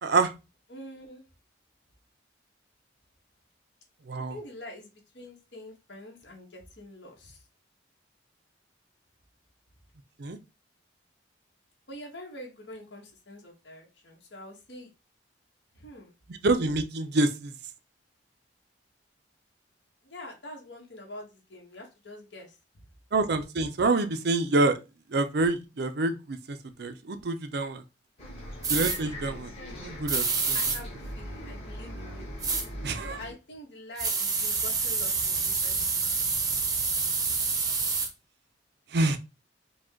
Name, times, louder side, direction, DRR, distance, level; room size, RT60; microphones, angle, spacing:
voice 1, 0.7-1.2 4.3-7.4 11.9-14.9 15.7-16.1 20.0-22.6 30.5-32.3 33.0-35.8 36.2-36.3, left 1 dB, 65° left, 1.5 m, -45 dB
voice 2, 16.4-17.5 23.1-24.8 25.1-27.8 28.7-29.5 29.8-30.6 32.8-33.2 38.9-39.2, right 2 dB, 60° right, 0.5 m, -27 dB
Bus, 28.2-33.3, equal, 35° left, 1.6 m, -40 dB
sound 1, 28.6-29.0 30.1-30.8 32.4-32.7 34.0-38.1, right 4 dB, 20° right, 0.7 m, -27 dB
5.0 x 2.3 x 3.7 m
head